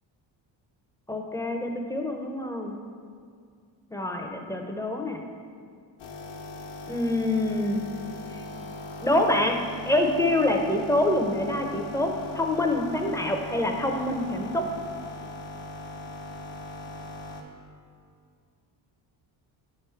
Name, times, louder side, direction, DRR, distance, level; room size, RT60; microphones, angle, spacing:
voice 1, 1.1-2.7 3.9-5.2 6.9-7.8 8.3-8.4 9.0-9.6 9.9-14.7, left 1 dB, 10° left, 3 dB, 0.4 m, -26 dB
sound 1, 6.0-17.4, left 2 dB, 75° left, 0.9 m, -40 dB
8.7 x 3.5 x 4.4 m, 2.2 s
cardioid pair, 110°, 46 cm